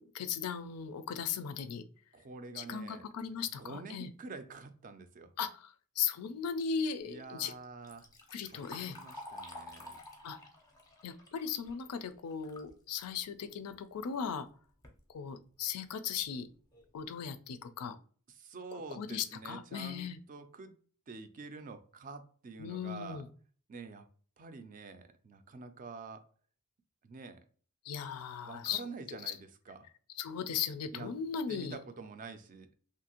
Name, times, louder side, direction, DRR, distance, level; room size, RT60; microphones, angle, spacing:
voice 1, 0.1-1.8 2.6-4.1 5.4-5.7 6.0-7.5 8.3-9.0 10.2-10.4 11.0-14.5 15.1-16.5 16.9-18.0 18.9-20.2 22.6-23.2 27.8-28.8 30.2-31.8, left 7 dB, 80° left, 0.4 m, -37 dB
voice 2, 2.1-3.1 3.6-5.3 7.0-8.1 8.4-10.0 18.3-20.8 21.1-23.3 23.7-24.1 24.4-26.3 27.0-27.4 28.4-29.9 30.9-31.1 31.5-32.7, right 4 dB, 35° right, 0.4 m, -47 dB
Liquid, 7.6-12.7 13.1-13.2 14.1-14.2 14.6-15.0 15.6-15.7 16.2-16.3 16.7-17.0, left 1 dB, 15° left, 0.5 m, -50 dB
2.7 x 2.5 x 2.8 m
head